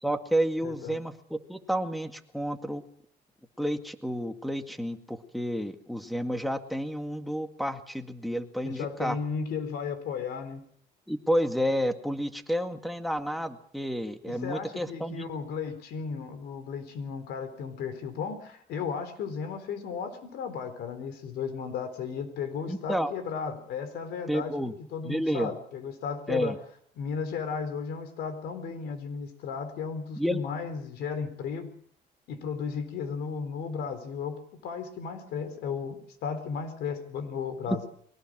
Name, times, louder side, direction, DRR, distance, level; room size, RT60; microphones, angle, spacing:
voice 1, 0.0-2.8 3.6-9.2 11.1-15.3 22.7-23.1 24.3-24.7 25.0-25.5 26.3-26.6 30.2-30.4 37.7-37.8, equal, ahead, 7 dB, 2.1 m, -30 dB
voice 2, 0.6-1.0 8.6-10.6 14.3-26.5 27.0-31.7 32.3-37.9, left 6 dB, 75° left, 10 dB, 4.1 m, -35 dB
23.0 x 18.5 x 6.3 m, 0.64 s
cardioid pair, 110°, 17 cm